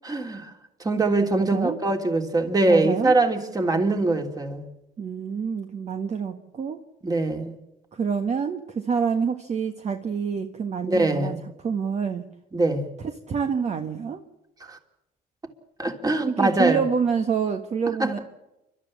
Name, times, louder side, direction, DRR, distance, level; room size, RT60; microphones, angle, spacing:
voice 1, 0.0-0.5 0.8-4.6 7.0-7.6 10.8-11.4 12.5-12.9 14.6-14.8 15.8-16.8 18.0-18.2, right 2 dB, 20° right, 5 dB, 3.1 m, -23 dB
voice 2, 2.7-3.1 5.0-6.8 7.9-11.3 11.6-12.3 13.3-14.2 16.3-18.2, right 6 dB, 40° right, 6 dB, 1.5 m, -27 dB
29.5 x 13.0 x 8.6 m, 0.94 s
cardioid pair, 110°, 17 cm